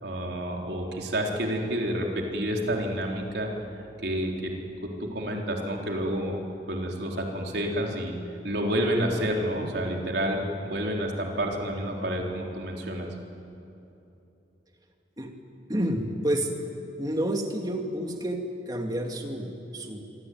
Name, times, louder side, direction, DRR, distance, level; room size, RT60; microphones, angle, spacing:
voice 1, 0.0-3.5 4.0-4.5 4.8-6.4 6.7-8.1 8.4-13.1, equal, 65° right, 0 dB, 3.9 m, -29 dB
voice 2, 15.7-16.5 17.0-20.0, right 1 dB, 20° right, 3 dB, 2.4 m, -29 dB
26.5 x 23.5 x 9.4 m, 2.9 s
head